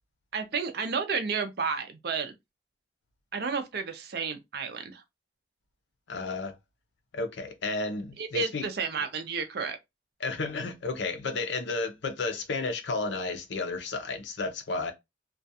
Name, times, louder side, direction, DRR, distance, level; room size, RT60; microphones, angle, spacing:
voice 1, 0.3-2.3 3.3-5.0 8.2-9.8, right 5 dB, 55° right, 0.5 m, -31 dB
voice 2, 6.1-6.6 7.1-8.7 10.2-14.9, left 3 dB, 75° left, 0.6 m, -32 dB
2.3 x 2.2 x 2.7 m
head